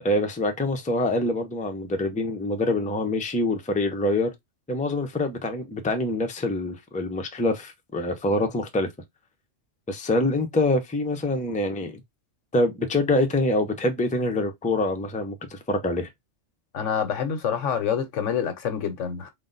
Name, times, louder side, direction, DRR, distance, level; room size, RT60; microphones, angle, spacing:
voice 1, 0.0-4.3 4.7-8.9 9.9-11.9 12.5-16.1, left 2 dB, 10° left, 0.5 m, -25 dB
voice 2, 16.7-19.3, left 7 dB, 85° left, 1.2 m, -27 dB
3.9 x 2.1 x 3.9 m
omnidirectional pair, 1.2 m